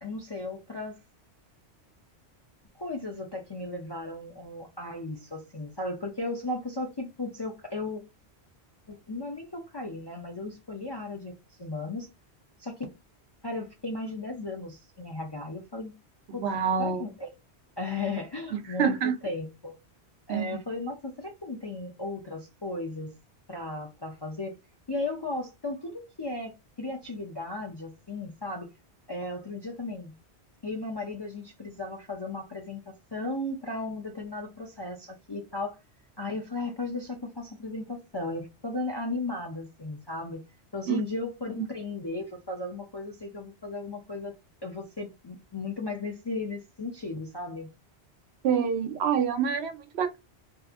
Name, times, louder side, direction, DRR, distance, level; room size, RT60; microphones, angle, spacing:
voice 1, 0.0-1.0 2.8-8.0 8.9-12.1 12.6-12.9 13.4-15.9 16.3-16.4 16.8-17.3 17.8-19.0 19.2-19.7 20.3-23.1 23.5-24.5 24.9-28.7 29.1-30.1 30.6-35.8 36.2-40.4 40.7-44.3 44.6-47.7, left 2 dB, 35° left, 0.4 m, -35 dB
voice 2, 16.3-17.0 18.5-19.2 20.3-20.5 40.9-41.0 41.6-41.7 48.4-50.2, right 7 dB, 75° right, 0.8 m, -27 dB
2.7 x 2.5 x 2.4 m
omnidirectional pair, 1.1 m